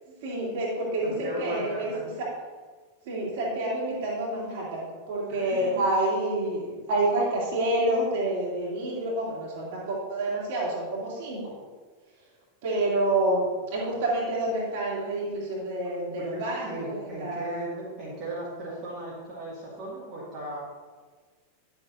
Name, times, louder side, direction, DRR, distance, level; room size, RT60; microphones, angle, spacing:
voice 1, 0.2-1.9 2.2-2.3 3.0-11.5 12.6-17.7, right 1 dB, 50° right, -4 dB, 2.8 m, -28 dB
voice 2, 1.0-2.1 5.3-5.8 16.2-20.6, right 1 dB, 35° right, -8 dB, 2.2 m, -37 dB
10.5 x 7.4 x 2.7 m, 1.4 s
figure-of-eight pair, 90°, 0 cm